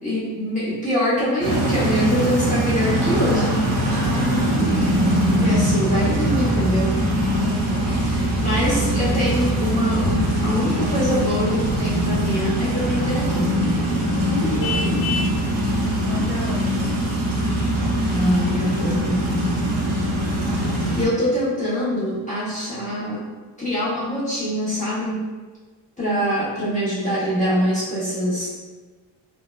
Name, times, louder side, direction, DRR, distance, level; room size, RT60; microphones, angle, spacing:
voice 1, 0.0-3.6 5.4-7.0 8.4-13.6 18.1-19.5 19.9-20.1 20.9-23.3 23.6-25.2 26.0-28.5, equal, 15° left, -12 dB, 1.4 m, -24 dB
sound 1, 1.4-21.1, right 1 dB, 35° right, 0.9 m, -22 dB
voice 2, 3.9-5.7 7.4-8.0 14.3-15.1 16.0-17.0, left 1 dB, 5° right, -8 dB, 1.0 m, -31 dB
Vehicle horn car horn honking, 14.6-15.4, left 3 dB, 55° left, 0.5 m, -28 dB
3.8 x 2.3 x 2.2 m, 1.4 s
wide cardioid pair, 150°, 49 cm